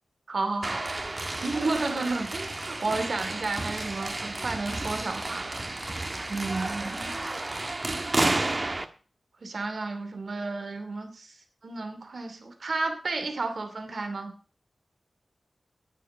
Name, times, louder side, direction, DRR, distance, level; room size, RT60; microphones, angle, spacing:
voice 1, 0.3-0.8 1.4-5.6 6.3-7.1 9.4-11.3 11.6-14.3, right 3 dB, 70° right, 6 dB, 2.7 m, -32 dB
sound 1, 0.6-8.9, right 2 dB, 40° right, 1.4 m, -31 dB
10.0 x 9.2 x 6.8 m, 0.40 s
cardioid pair, 50°, 0 cm